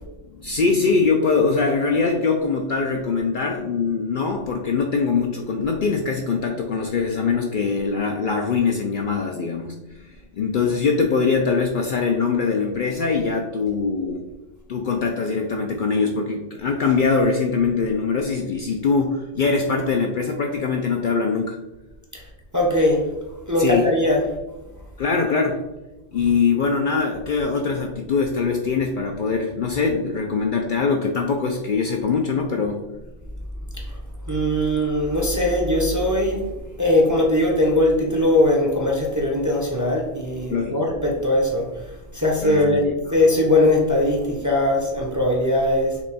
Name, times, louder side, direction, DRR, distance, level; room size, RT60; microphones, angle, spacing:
voice 1, 0.3-9.8 10.3-14.2 14.7-21.6 23.6-23.9 25.0-25.6 26.1-32.8 40.5-40.9 42.4-43.2, left 4 dB, 60° left, 2 dB, 0.6 m, -22 dB
voice 2, 22.5-23.1 23.5-24.3 34.3-36.4 36.8-41.7 42.1-42.8 43.1-46.0, left 1 dB, 20° right, -2 dB, 0.6 m, -20 dB
5.7 x 2.3 x 4.1 m, 1.0 s
omnidirectional pair, 1.2 m